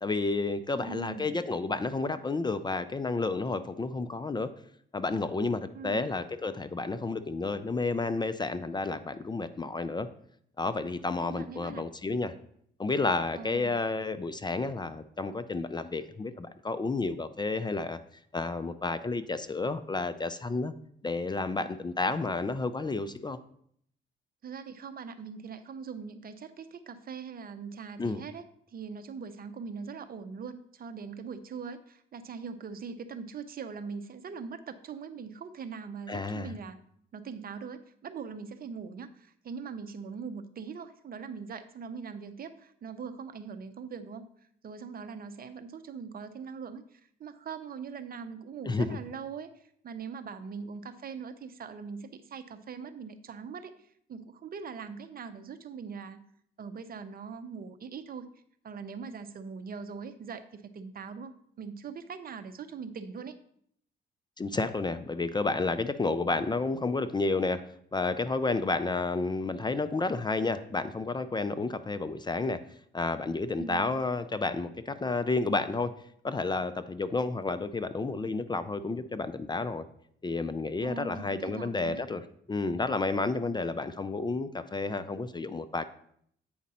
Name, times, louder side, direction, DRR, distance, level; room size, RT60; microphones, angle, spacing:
voice 1, 0.0-4.5 4.9-10.1 10.6-12.3 12.8-18.0 18.3-20.7 21.0-23.4 28.0-28.2 36.1-36.5 48.6-48.9 64.4-67.6 67.9-72.6 72.9-75.9 76.2-79.8 80.2-82.2 82.5-85.8, left 3 dB, 20° left, 12 dB, 0.5 m, -31 dB
voice 2, 0.7-1.4 5.7-6.1 11.2-11.9 13.3-13.8 24.4-28.5 28.7-36.8 37.1-44.3 44.6-56.2 56.6-58.3 58.6-63.4 73.6-74.0 80.8-82.0, right 5 dB, 50° right, 10 dB, 0.7 m, -41 dB
8.6 x 5.1 x 4.2 m, 0.67 s
cardioid pair, 90°, 20 cm